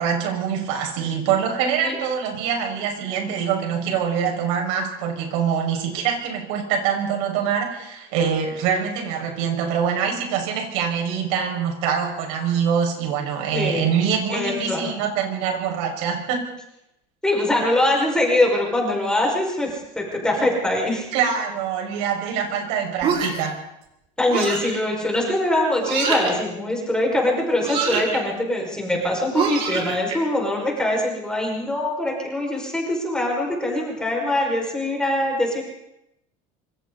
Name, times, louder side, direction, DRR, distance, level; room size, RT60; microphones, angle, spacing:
voice 1, 0.0-16.5 21.1-23.6, right 7 dB, 65° right, 2 dB, 5.9 m, -24 dB
voice 2, 13.5-13.9 14.3-14.8 17.2-21.1 24.2-35.6, left 1 dB, 5° left, -1 dB, 5.7 m, -23 dB
sound 1, 23.0-23.5 24.3-24.8 25.8-26.4 27.6-28.2 29.3-30.1, right 6 dB, 35° right, 5.3 m, -24 dB
26.5 x 26.0 x 4.1 m, 0.82 s
cardioid pair, 170°, 16 cm